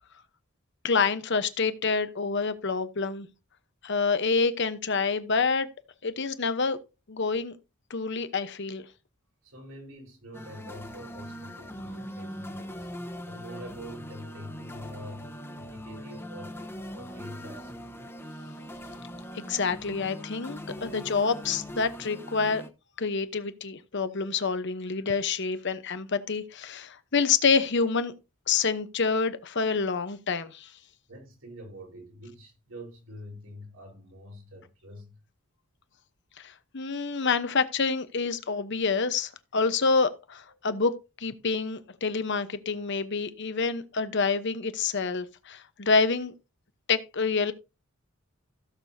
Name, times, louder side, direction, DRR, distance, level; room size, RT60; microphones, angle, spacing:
voice 1, 0.8-3.3 3.8-5.7 6.0-6.8 7.1-7.6 7.9-8.8 19.3-22.6 23.0-28.1 28.5-30.7 36.4-40.9 41.2-46.3 46.9-47.5, left 4 dB, 55° left, 0.9 m, -27 dB
voice 2, 9.4-17.7 31.1-35.2, equal, 75° right, 4.2 m, -45 dB
sound 1, 10.3-22.7, equal, 10° left, 1.1 m, -41 dB
16.5 x 6.8 x 2.7 m
head